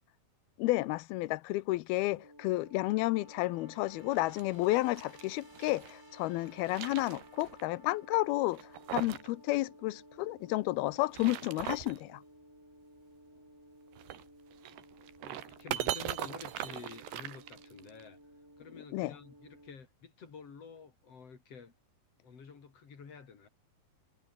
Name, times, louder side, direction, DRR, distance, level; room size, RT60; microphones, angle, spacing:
voice 1, 0.6-8.6 8.9-12.2 18.9-19.1, left 18 dB, 80° left, 2.5 m, -31 dB
sound 1, 2.1-19.7, equal, 5° right, 7.7 m, -56 dB
sound 2, 4.1-5.9 6.4-7.6 7.9-8.0 8.5-9.3 9.6-9.7 10.9-12.0 13.9-18.0, right 12 dB, 85° right, 3.8 m, -40 dB
voice 2, 15.2-18.2 18.6-21.7 22.2-23.5, left 5 dB, 40° left, 4.2 m, -50 dB
omnidirectional pair, 4.6 m